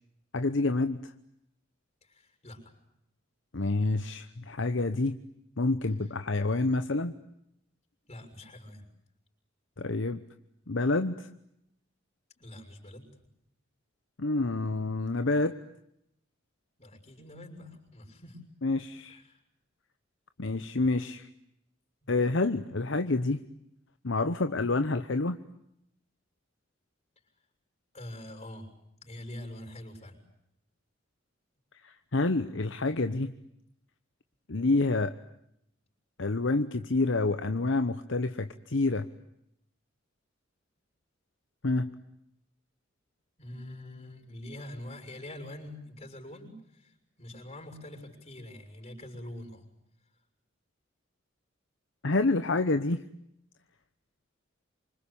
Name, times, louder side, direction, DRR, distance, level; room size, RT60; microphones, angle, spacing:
voice 1, 0.3-1.1 3.5-5.2 5.6-7.1 9.8-10.2 10.7-11.3 14.2-15.6 18.6-19.2 20.4-21.3 22.1-23.4 24.0-25.4 31.8-33.3 34.5-35.1 36.2-39.1 41.6-41.9 52.0-53.0, left 2 dB, 65° left, 9 dB, 1.0 m, -28 dB
voice 2, 2.1-2.6 8.1-8.9 12.4-13.0 16.8-18.4 19.1-19.4 27.9-28.7 29.0-30.2 43.4-46.9 47.2-49.6, left 1 dB, 35° left, 4 dB, 6.6 m, -44 dB
27.5 x 25.0 x 8.6 m, 0.78 s
head